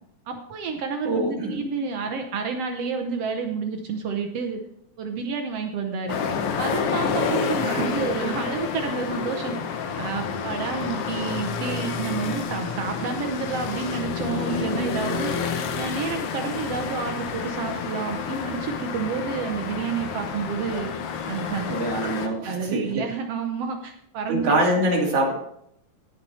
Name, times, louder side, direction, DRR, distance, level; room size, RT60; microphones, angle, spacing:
voice 1, 0.3-4.6 5.0-6.2 6.6-9.6 10.0-15.3 15.8-20.9 21.3-21.7 22.4-24.6, right 5 dB, 70° right, 4 dB, 1.5 m, -29 dB
voice 2, 1.1-1.7 7.5-7.9 21.7-23.0 24.3-25.3, right 1 dB, 45° right, -2 dB, 3.5 m, -24 dB
sound 1, 6.1-22.3, left 6 dB, 70° left, 1.4 m, -29 dB
17.5 x 6.0 x 4.3 m, 0.71 s
omnidirectional pair, 3.9 m